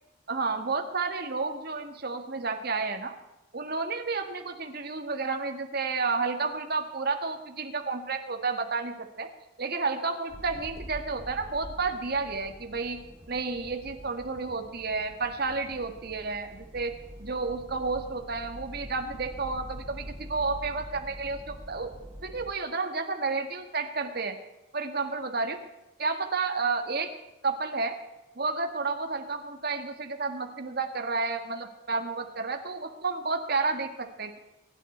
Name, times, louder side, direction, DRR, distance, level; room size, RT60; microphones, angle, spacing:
voice 1, 0.3-3.2 3.5-9.3 9.6-13.0 13.3-16.9 17.2-21.9 22.2-24.4 24.7-25.6 26.0-27.1 27.4-28.0 28.4-34.4, right 4 dB, 50° right, 5 dB, 1.7 m, -31 dB
sound 1, 10.3-22.5, equal, 20° right, 0.8 m, -45 dB
23.0 x 9.9 x 4.4 m, 0.96 s
head